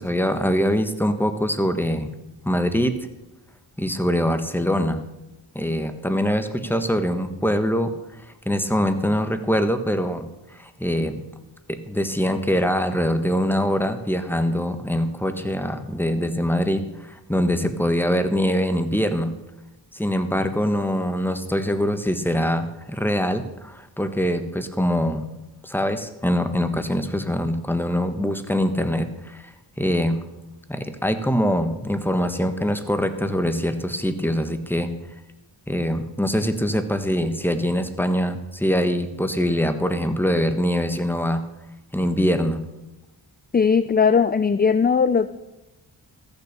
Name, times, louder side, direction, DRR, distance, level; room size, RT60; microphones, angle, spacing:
voice 1, 0.0-2.1 2.4-3.0 3.8-5.0 5.5-7.9 8.2-10.2 10.5-11.2 11.7-19.3 19.9-25.2 25.6-29.5 29.8-30.2 30.7-34.9 35.7-41.4 41.9-42.6, equal, 5° left, 9 dB, 1.3 m, -23 dB
voice 2, 43.5-45.3, left 6 dB, 20° left, 14 dB, 0.4 m, -18 dB
14.0 x 7.1 x 6.7 m, 0.96 s
cardioid pair, 45°, 48 cm